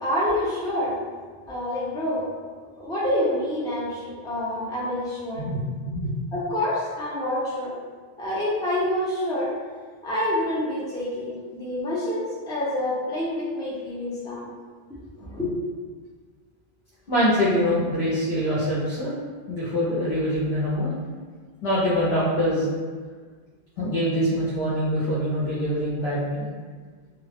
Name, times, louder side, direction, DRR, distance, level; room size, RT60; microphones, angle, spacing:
voice 1, 0.0-0.9 1.5-2.2 2.8-5.5 6.3-7.8 8.2-9.5 10.0-14.4 15.2-15.5, left 1 dB, 5° left, -8 dB, 0.4 m, -27 dB
voice 2, 5.4-6.1 17.1-19.1 19.5-20.9 21.6-22.7 23.8-26.5, equal, 65° left, -9 dB, 0.8 m, -24 dB
2.2 x 2.0 x 3.3 m, 1.5 s
omnidirectional pair, 1.0 m